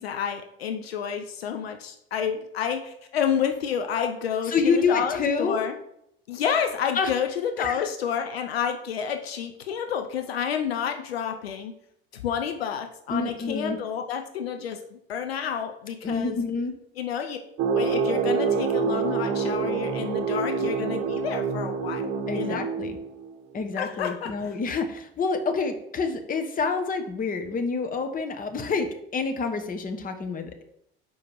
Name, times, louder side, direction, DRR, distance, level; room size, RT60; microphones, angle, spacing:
voice 1, 0.0-5.7 6.3-11.7 12.1-16.4 17.0-17.4 17.7-22.0 22.3-22.6 23.8-24.5, left 8 dB, 75° left, 6 dB, 0.6 m, -29 dB
voice 2, 4.5-5.6 6.9-7.1 7.6-7.9 13.1-13.8 16.0-16.7 22.3-23.0 23.5-28.9 29.1-30.6, left 4 dB, 25° left, 7 dB, 1.0 m, -27 dB
sound 1, 17.6-23.3, right 5 dB, 45° right, 0.9 m, -27 dB
5.4 x 4.9 x 4.6 m, 0.76 s
figure-of-eight pair, 65°, 31 cm